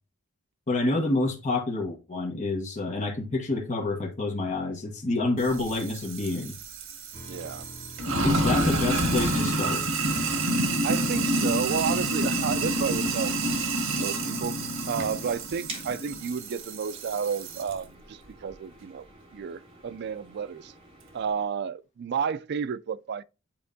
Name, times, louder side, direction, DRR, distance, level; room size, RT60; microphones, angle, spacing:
voice 1, 0.7-6.5 8.2-9.8, left 2 dB, 35° left, 1.2 m, -28 dB
Sink (filling or washing), 5.4-17.7, right 1 dB, 75° right, 1.7 m, -28 dB
sound 1, 7.1-14.2, equal, 10° left, 2.0 m, -50 dB
voice 2, 7.2-7.7 8.3-8.4 8.6-8.8 10.8-13.3 13.9-14.6 14.9-19.1 19.3-20.7 21.1-23.2, right 6 dB, 55° right, 0.4 m, -31 dB
sound 2, 15.7-21.5, right 2 dB, 25° right, 2.1 m, -48 dB
8.8 x 4.4 x 2.6 m
head